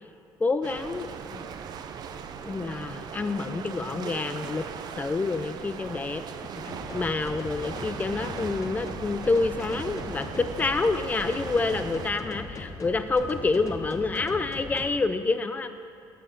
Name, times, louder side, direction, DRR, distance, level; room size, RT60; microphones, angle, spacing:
voice 1, 0.4-1.4 2.4-4.7 5.0-6.2 6.9-15.7, left 3 dB, 20° left, 10 dB, 0.5 m, -28 dB
sound 1, 0.6-12.1, right 7 dB, 55° right, 0.5 m, -39 dB
sound 2, 6.7-14.9, left 3 dB, 40° left, 1.0 m, -40 dB
14.0 x 6.7 x 3.9 m, 2.3 s
cardioid pair, 120°, 8 cm